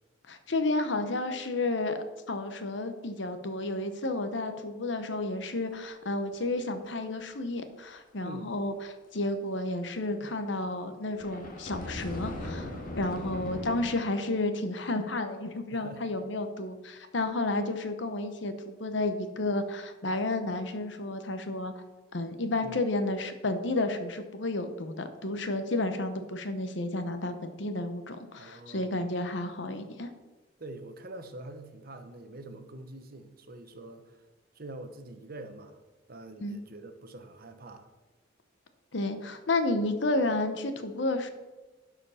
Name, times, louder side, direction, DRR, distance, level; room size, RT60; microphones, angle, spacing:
voice 1, 0.3-12.7 13.0-21.7 22.1-30.1 36.4-36.6 38.9-41.3, left 2 dB, 60° left, 8 dB, 1.0 m, -31 dB
sound 1, 11.1-13.8, left 1 dB, 45° left, 1.7 m, -38 dB
voice 2, 15.7-16.1 22.6-22.8 28.4-29.1 30.6-34.2 34.5-35.8 36.1-37.9, right 2 dB, 50° right, 8 dB, 0.9 m, -45 dB
11.5 x 5.0 x 5.7 m, 1.2 s
head